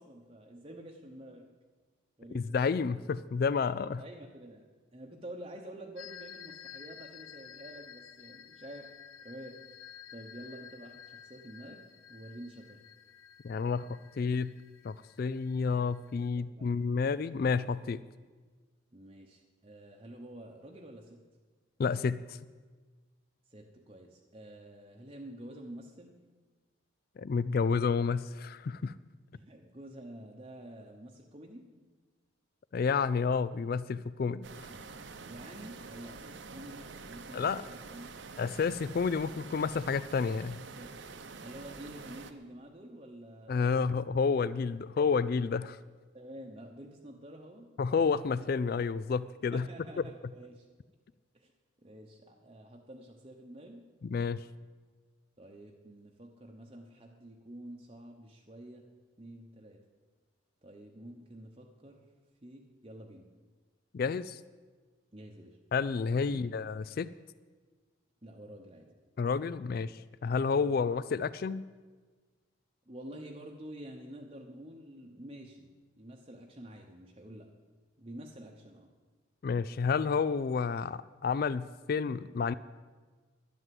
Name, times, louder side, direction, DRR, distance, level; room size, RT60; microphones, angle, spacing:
voice 1, 0.0-1.5 2.2-2.5 4.0-4.6 4.9-8.9 9.2-9.6 10.1-11.8 12.1-12.8 16.3-16.7 18.9-21.2 23.5-26.1 29.3-31.7 35.2-38.1 40.8-40.9 41.4-43.8 46.1-47.7 49.5-50.7 51.3-51.5 51.8-53.9 55.4-58.8 59.2-59.8 60.6-62.1 62.4-63.3 65.1-65.6 66.3-66.4 68.2-68.9 70.6-70.8 72.9-75.7 76.0-77.5 78.0-78.9, right 1 dB, 25° right, 1 dB, 0.9 m, -48 dB
voice 2, 2.3-4.0 13.4-14.5 14.8-18.0 21.8-22.4 27.2-28.9 32.7-34.5 37.3-37.6 38.4-40.6 43.5-45.8 47.8-49.7 54.0-54.4 63.9-64.4 65.7-67.1 69.2-71.6 79.4-82.5, left 5 dB, 45° left, 17 dB, 0.3 m, -30 dB
sound 1, 6.0-16.3, left 9 dB, 85° left, 0.6 m, -52 dB
sound 2, 34.4-42.3, right 4 dB, 60° right, 0.9 m, -47 dB
11.0 x 10.5 x 7.6 m, 1.4 s
head